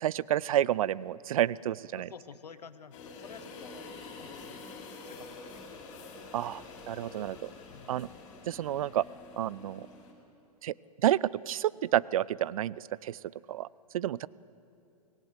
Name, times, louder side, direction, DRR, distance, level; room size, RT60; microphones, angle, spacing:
voice 1, 0.0-2.1 6.3-7.5 7.9-8.1 8.5-9.0 9.4-9.9 10.6-10.7 11.0-13.2 13.5-13.7 13.9-14.3, right 12 dB, 60° right, 22 dB, 0.5 m, -30 dB
voice 2, 1.9-3.9 4.2-4.7 5.0-5.6 7.7-8.0, left 6 dB, 75° left, 14 dB, 1.1 m, -50 dB
sound 1, 2.9-10.1, left 3 dB, 50° left, 4.9 m, -47 dB
25.0 x 18.0 x 8.1 m, 2.7 s
figure-of-eight pair, 105°, 20 cm